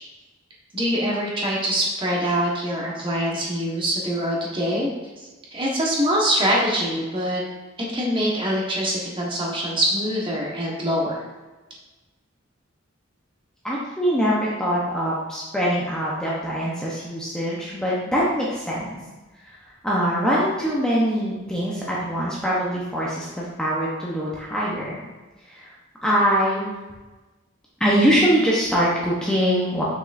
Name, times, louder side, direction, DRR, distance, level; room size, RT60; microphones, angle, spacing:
voice 1, 0.7-4.9 5.2-7.4 7.9-11.2, equal, 25° right, -3 dB, 1.3 m, -24 dB
voice 2, 13.6-19.0 19.8-25.0 25.5-25.7 26.0-26.7 27.8-29.8, equal, 5° left, -6 dB, 0.9 m, -23 dB
6.3 x 6.0 x 2.6 m, 1.2 s
head